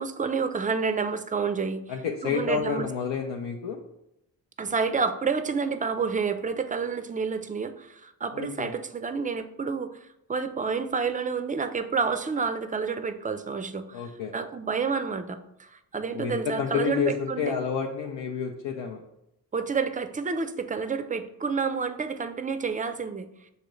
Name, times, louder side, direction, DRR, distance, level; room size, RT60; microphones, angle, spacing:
voice 1, 0.0-1.9 2.2-2.9 4.6-9.9 10.3-17.5 19.5-23.3, right 5 dB, 20° right, 10 dB, 0.4 m, -29 dB
voice 2, 1.9-3.8 8.3-8.7 13.9-14.3 16.1-19.0, left 6 dB, 75° left, 1 dB, 0.6 m, -29 dB
6.3 x 2.6 x 3.1 m, 0.82 s
supercardioid pair, 45°, 45 cm